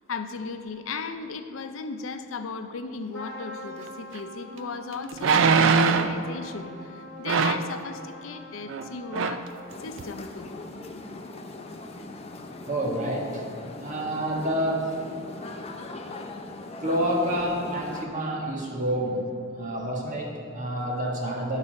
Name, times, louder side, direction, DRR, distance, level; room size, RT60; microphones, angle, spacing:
voice 1, 0.1-10.6, left 4 dB, 80° left, 8 dB, 0.6 m, -36 dB
Trumpet, 3.1-10.0, left 1 dB, 5° left, 2.0 m, -43 dB
sound 1, 4.2-4.3 5.2-6.2 7.3-7.7 8.7-8.9 9.1-9.5 10.0-10.1, right 5 dB, 65° right, 0.4 m, -21 dB
sound 2, 9.7-18.1, left 2 dB, 30° left, 0.5 m, -40 dB
voice 2, 12.7-13.4 13.8-14.9 16.8-19.2 19.6-21.6, equal, 40° right, -3 dB, 1.6 m, -28 dB
10.5 x 4.1 x 6.3 m, 2.6 s
head